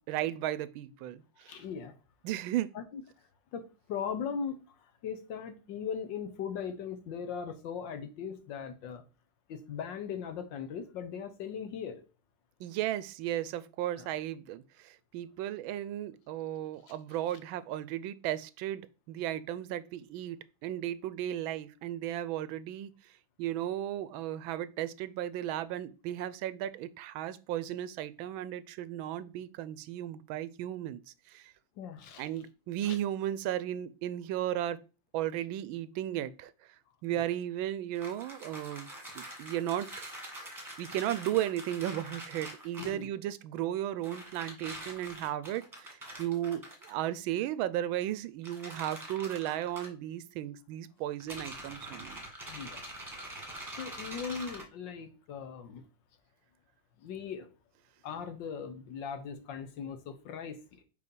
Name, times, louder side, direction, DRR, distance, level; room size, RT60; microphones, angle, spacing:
voice 1, 0.0-1.5 2.2-2.7 12.6-22.9 23.4-31.0 31.3-31.4 32.2-34.8 35.1-36.5 37.0-38.9 39.1-40.1 40.4-40.5 40.8-52.2, right 12 dB, 85° right, 1.4 m, -35 dB
voice 2, 1.5-1.9 2.7-3.0 3.5-9.0 9.5-12.0 13.9-14.1 16.9-17.0 31.8-32.3 32.8-33.0 37.1-37.2 42.8-43.1 52.5-52.8 53.8-55.8 57.0-57.5 58.0-60.8, left 7 dB, 70° left, 1.5 m, -39 dB
sound 1, 37.9-43.0 44.0-46.9 48.4-49.9 51.2-54.6, right 1 dB, 10° right, 1.6 m, -45 dB
4.9 x 4.6 x 5.3 m
omnidirectional pair, 2.1 m